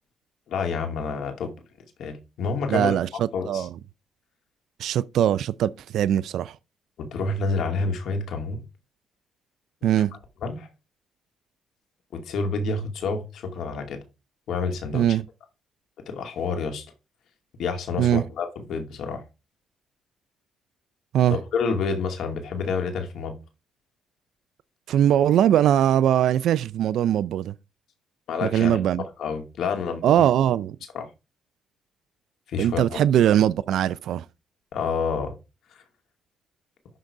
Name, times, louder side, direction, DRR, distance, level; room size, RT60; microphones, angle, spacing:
voice 1, 0.5-1.5 2.0-2.9 3.3-3.7 7.0-8.6 10.4-10.7 12.1-14.0 14.5-15.1 16.1-16.9 17.6-19.2 21.5-23.4 28.3-28.8 29.2-30.0 30.9-31.1 32.5-33.0 34.7-35.3 35.7-35.8, left 4 dB, 75° left, 2.3 m, -28 dB
voice 2, 2.7-3.7 4.8-6.5 9.8-10.1 14.9-15.2 18.0-18.2 21.1-21.4 24.9-27.5 28.4-29.0 30.0-30.8 32.6-34.2, right 10 dB, 75° right, 0.4 m, -21 dB
11.5 x 3.9 x 4.7 m
cardioid pair, 90°, 0 cm